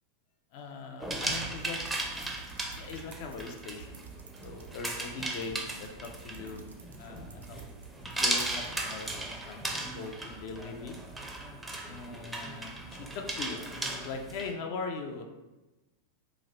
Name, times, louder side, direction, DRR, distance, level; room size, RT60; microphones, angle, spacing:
voice 1, 0.5-1.8 2.7-3.9 4.4-6.7 7.0-7.7 8.2-11.0 11.8-15.2, left 4 dB, 50° left, 4 dB, 0.4 m, -41 dB
sound 1, 1.0-14.5, right 2 dB, 5° right, 0.4 m, -37 dB
sound 2, 1.8-9.4, right 5 dB, 70° right, 0.4 m, -52 dB
3.0 x 2.4 x 3.8 m, 1.1 s
figure-of-eight pair, 90°, 0 cm